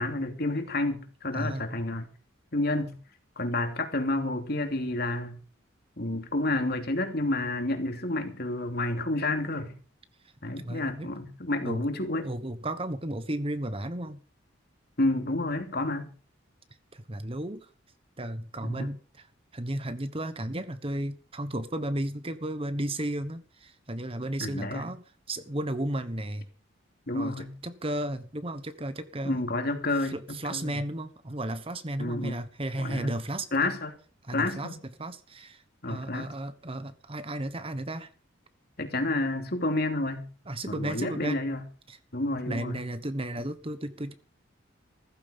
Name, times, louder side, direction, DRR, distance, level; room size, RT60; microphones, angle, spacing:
voice 1, 0.0-2.1 2.5-3.0 3.4-5.4 6.0-9.7 10.4-12.3 15.0-16.1 18.6-18.9 24.4-24.9 27.1-27.5 29.2-30.7 32.0-32.4 32.8-33.1 33.5-33.9 34.3-34.8 35.8-36.3 38.8-40.3 40.7-41.6 42.1-42.8, left 2 dB, 50° left, 3.0 m, -30 dB
voice 2, 1.3-1.7 10.6-11.1 11.6-11.9 12.2-14.2 16.9-17.7 18.2-19.3 19.5-26.5 27.1-29.4 30.0-33.7 34.2-35.6 35.9-38.1 40.5-41.4 41.9-42.0 42.5-44.1, right 1 dB, 30° right, 1.2 m, -34 dB
16.0 x 14.5 x 5.2 m
head